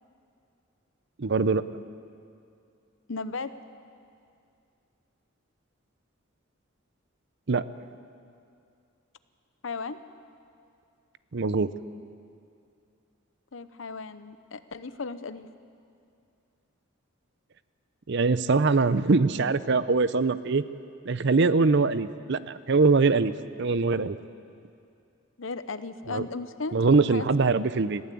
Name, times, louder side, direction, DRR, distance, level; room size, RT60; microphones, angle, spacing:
voice 1, 1.2-1.6 7.5-7.6 11.3-11.7 18.1-20.6 21.1-23.3 23.6-24.2 26.1-26.3 26.7-28.0, right 4 dB, 60° right, 14 dB, 0.6 m, -23 dB
voice 2, 3.1-3.5 9.6-10.0 13.5-15.5 25.4-27.3, left 4 dB, 70° left, 12 dB, 0.8 m, -36 dB
21.5 x 15.0 x 8.4 m, 2.5 s
head